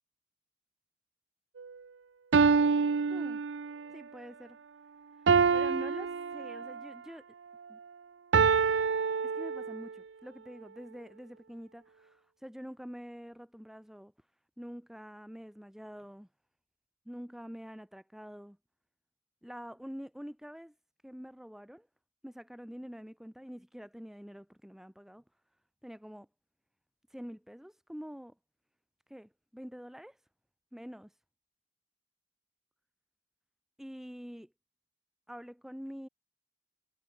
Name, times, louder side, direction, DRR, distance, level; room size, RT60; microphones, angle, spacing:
sound 1, 1.6-1.7 2.3-3.9 5.3-6.9 8.3-9.9, right 5 dB, 85° right, 0.6 m, -27 dB
voice 1, 3.1-3.4 3.9-4.6 5.5-7.2 7.7-7.8 9.2-14.1 14.6-16.3 17.1-18.6 19.4-20.7 21.0-21.9 22.2-25.2 25.8-26.3 27.1-28.3 29.1-30.2 30.7-31.1 33.8-34.5 35.3-36.1, equal, ahead, 0.7 m, -46 dB
head